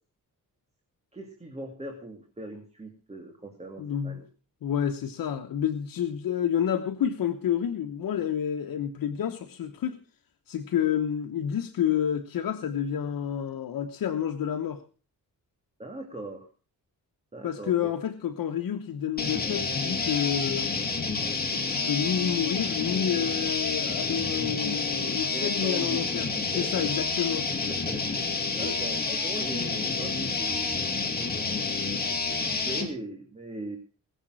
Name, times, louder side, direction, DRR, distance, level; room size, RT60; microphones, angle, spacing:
voice 1, 1.1-4.3 15.8-16.5 17.3-17.9 25.3-26.1 26.3-26.9 27.7-31.3 31.9-32.2 32.5-33.8, right 1 dB, 20° right, 3 dB, 2.2 m, -40 dB
voice 2, 3.8-4.2 4.6-10.0 10.5-14.8 17.4-20.7 21.5-26.3 26.5-27.5 28.6-28.9, left 9 dB, 85° left, 5 dB, 1.1 m, -29 dB
sound 1, 19.2-32.9, left 4 dB, 25° left, 2.7 m, -29 dB
20.0 x 7.4 x 6.2 m, 0.38 s
wide cardioid pair, 130°, 34 cm